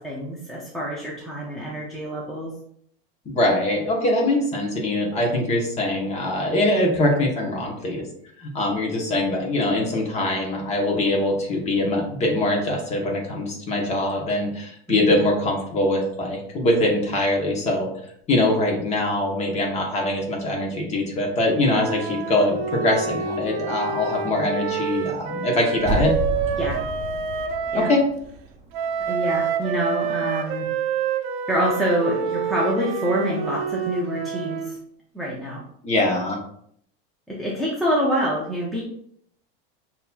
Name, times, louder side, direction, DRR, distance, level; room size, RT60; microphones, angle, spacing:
voice 1, 0.0-2.5 14.9-15.3 26.6-26.8 27.7-27.9 29.1-30.7 31.5-34.7 35.1-35.6 37.3-38.8, equal, ahead, -6 dB, 0.4 m, -26 dB
voice 2, 3.3-8.0 8.4-17.9 18.3-26.2 27.7-28.0 35.8-36.4, left 1 dB, 20° left, 0 dB, 0.9 m, -23 dB
Wind instrument woodwind instrument, 21.6-28.0 28.7-34.8, right 6 dB, 75° right, 0.7 m, -28 dB
sound 1, 25.8-28.7 29.0-29.1, equal, 20° right, 0.7 m, -29 dB
6.2 x 2.8 x 2.2 m, 0.67 s
supercardioid pair, 160°, 31 cm